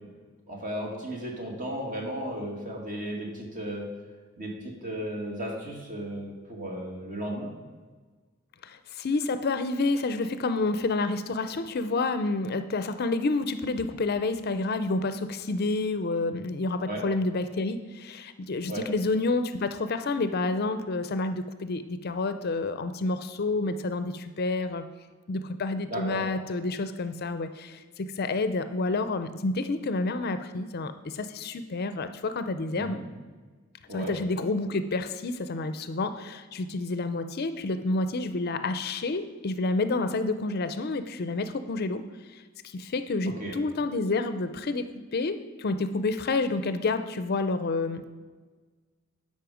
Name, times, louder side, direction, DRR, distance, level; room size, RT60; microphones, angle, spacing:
voice 1, 0.5-3.9 4.4-7.5 16.8-17.0 18.7-18.9 25.9-26.3 32.7-33.0 33.9-34.1 43.3-43.5, right 1 dB, 40° right, -1 dB, 2.1 m, -35 dB
voice 2, 8.6-24.8 25.3-33.0 33.9-42.0 42.7-48.1, left 3 dB, 50° left, 10 dB, 0.5 m, -29 dB
12.5 x 5.5 x 5.0 m, 1.4 s
head